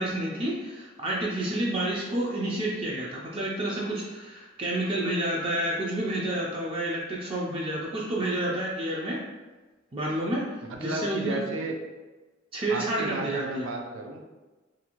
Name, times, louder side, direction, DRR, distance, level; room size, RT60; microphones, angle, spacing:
voice 1, 0.0-9.2 9.9-10.5 10.8-11.4 12.5-13.7, right 1 dB, 30° right, -4 dB, 0.4 m, -29 dB
voice 2, 10.6-11.8 12.7-14.3, right 2 dB, 90° right, 2 dB, 0.5 m, -33 dB
2.6 x 2.4 x 2.9 m, 1.2 s
head